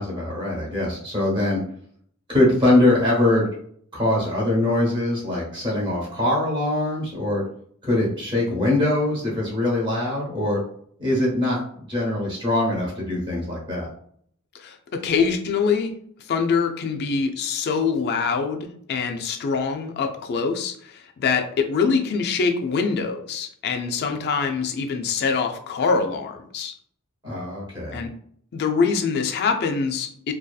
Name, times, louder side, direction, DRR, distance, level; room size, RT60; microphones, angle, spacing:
voice 1, 0.0-1.6 2.3-3.5 3.9-7.4 7.8-10.6 11.0-13.9 27.2-28.0, left 1 dB, 20° right, -4 dB, 0.9 m, -22 dB
voice 2, 14.6-15.9 16.3-26.7 27.9-28.1 28.5-30.3, left 5 dB, 50° left, 5 dB, 0.3 m, -24 dB
2.6 x 2.3 x 2.3 m, 0.62 s
head